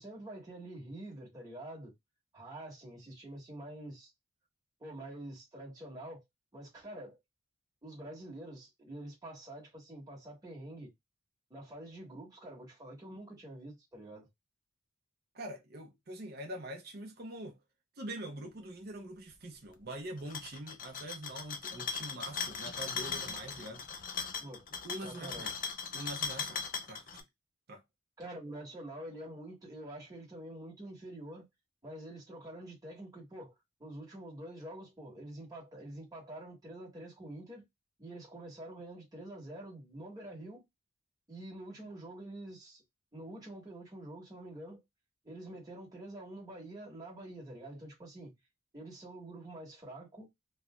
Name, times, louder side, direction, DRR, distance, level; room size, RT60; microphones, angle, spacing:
voice 1, 0.0-1.9 2.3-4.1 4.8-6.2 6.5-7.2 7.8-10.9 11.5-14.3 24.4-24.6 25.0-25.5 28.2-31.5 31.8-33.5 33.8-37.6 38.0-40.6 41.3-42.8 43.1-44.8 45.2-48.3 48.7-50.3, right 1 dB, 20° right, 1.3 m, -46 dB
voice 2, 15.3-17.6 18.0-23.8 24.8-25.5 25.9-26.6 26.9-27.2 27.7-27.8, right 1 dB, 50° right, 0.9 m, -44 dB
sound 1, 20.2-27.2, left 6 dB, 45° left, 0.5 m, -39 dB
3.2 x 2.6 x 2.2 m
head